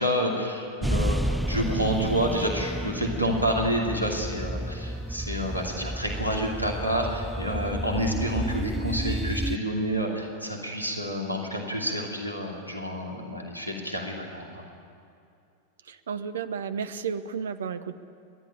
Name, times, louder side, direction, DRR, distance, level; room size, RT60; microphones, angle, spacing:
voice 1, 0.0-14.6, equal, 90° left, 0 dB, 2.6 m, -29 dB
sound 1, 0.8-9.6, right 1 dB, ahead, 0.5 m, -31 dB
voice 2, 15.8-18.0, right 6 dB, 65° right, 14 dB, 0.9 m, -32 dB
29.5 x 11.5 x 10.0 m, 2.5 s
figure-of-eight pair, 90°, 0 cm